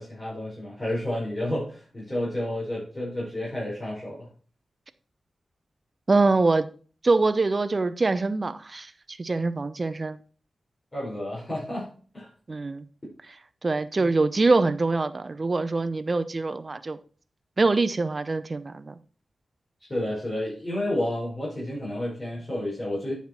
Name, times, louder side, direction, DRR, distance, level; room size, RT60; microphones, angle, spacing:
voice 1, 0.0-4.3 10.9-11.9 12.1-12.3 14.0-14.1 19.9-23.1, left 1 dB, 30° left, -7 dB, 5.0 m, -30 dB
voice 2, 6.1-6.7 7.0-10.2 12.5-12.8 13.6-17.0 17.6-18.9, right 3 dB, 40° right, 12 dB, 0.7 m, -24 dB
8.7 x 5.8 x 4.4 m, 0.39 s
cardioid pair, 60°, 0 cm